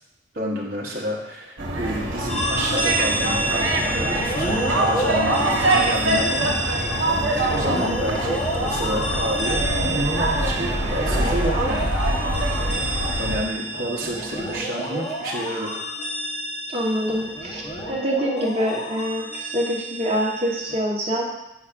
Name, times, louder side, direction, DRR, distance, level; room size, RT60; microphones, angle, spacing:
voice 1, 0.3-3.5 3.9-7.1 7.5-11.9 13.2-15.8, equal, 50° right, -4 dB, 1.0 m, -29 dB
sound 1, 1.6-13.4, right 1 dB, 70° right, 1.1 m, -24 dB
sound 2, 2.3-20.8, right 1 dB, 30° left, 1.0 m, -28 dB
voice 2, 16.7-17.6 17.9-21.2, equal, 30° right, -2 dB, 1.2 m, -25 dB
8.3 x 5.5 x 2.5 m, 0.89 s
head